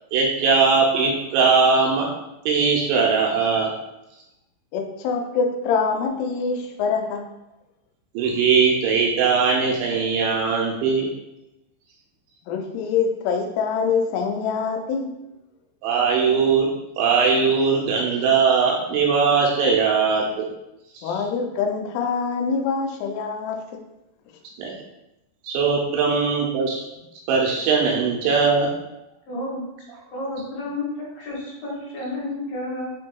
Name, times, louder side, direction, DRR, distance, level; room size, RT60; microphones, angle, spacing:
voice 1, 0.1-2.1 2.5-3.7 8.2-11.1 15.8-16.7 17.0-20.5 24.6-24.7 25.4-26.9 27.3-28.7, right 5 dB, 80° right, -1 dB, 2.7 m, -20 dB
voice 2, 4.7-7.3 12.5-15.1 21.0-23.8, left 5 dB, 90° left, 3 dB, 3.0 m, -25 dB
voice 3, 29.3-29.6 30.1-32.9, left 2 dB, 70° left, -7 dB, 2.3 m, -31 dB
7.5 x 2.7 x 2.3 m, 0.92 s
omnidirectional pair, 5.4 m